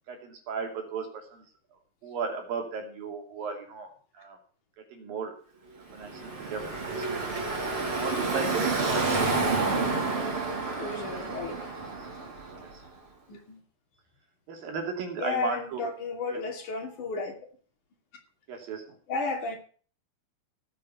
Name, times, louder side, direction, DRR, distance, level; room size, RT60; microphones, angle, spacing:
voice 1, 0.1-1.5 2.0-4.4 4.9-5.3 5.9-7.3 7.9-9.3 9.6-10.6 10.9-11.2 11.7-11.8 12.6-12.7 14.5-15.8 16.3-16.4 18.5-18.8, right 5 dB, 65° right, 3 dB, 4.2 m, -36 dB
Car passing by / Traffic noise roadway noise, 5.9-12.8, right 3 dB, 35° right, 4.4 m, -29 dB
voice 2, 9.0-9.9 10.8-11.7 13.3-13.6 15.2-17.3 19.1-19.6, left 3 dB, 55° left, 3 dB, 3.9 m, -34 dB
17.0 x 9.0 x 5.8 m, 0.42 s
omnidirectional pair, 4.5 m